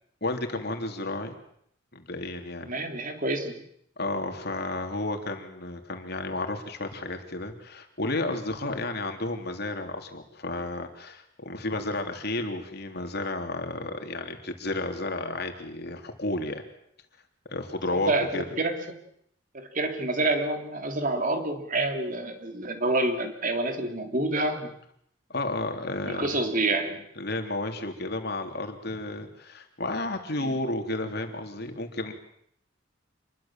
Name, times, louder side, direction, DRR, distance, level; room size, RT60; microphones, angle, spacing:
voice 1, 0.2-1.4 1.9-2.7 4.0-16.6 17.5-18.4 25.3-26.3 27.2-32.1, left 2 dB, 55° left, 5 dB, 3.3 m, -32 dB
voice 2, 2.7-3.6 18.1-19.0 19.5-24.7 26.0-27.0 30.4-30.6, right 2 dB, 40° right, 6 dB, 3.1 m, -28 dB
27.5 x 22.0 x 7.5 m, 0.71 s
head